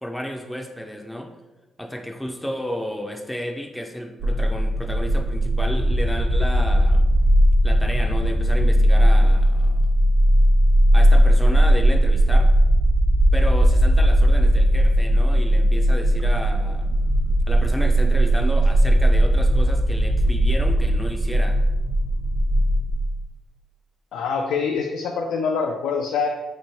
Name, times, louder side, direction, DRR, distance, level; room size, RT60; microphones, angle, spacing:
voice 1, 0.0-1.3 1.8-7.0 7.6-9.8 10.9-12.5 13.3-16.9 17.5-21.6, equal, 5° left, 2 dB, 0.4 m, -32 dB
sound 1, 4.2-22.9, equal, 80° right, 1.1 m, -19 dB
sound 2, 4.9-10.1 10.6-22.1, right 2 dB, 50° right, 0.8 m, -23 dB
voice 2, 24.1-26.3, left 5 dB, 80° left, 2 dB, 0.4 m, -25 dB
3.1 x 2.9 x 4.3 m, 1.1 s
cardioid pair, 90°, 0 cm